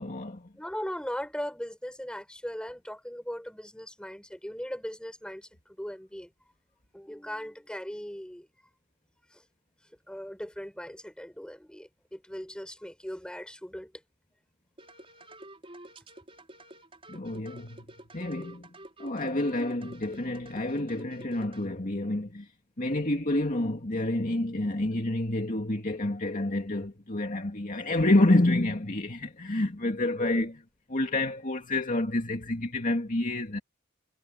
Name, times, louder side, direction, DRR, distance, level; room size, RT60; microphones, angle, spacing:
voice 1, 0.0-0.5 17.1-17.8 18.1-18.7 19.0-22.5 22.8-30.5 30.9-33.6, left 1 dB, 40° left, 2.3 m, -28 dB
voice 2, 0.5-5.5 5.8-6.3 6.9-8.5 9.3-9.4 10.1-13.9 30.2-30.5, equal, 5° left, 6.0 m, -39 dB
sound 1, 14.8-21.7, right 1 dB, 25° right, 4.5 m, -49 dB
head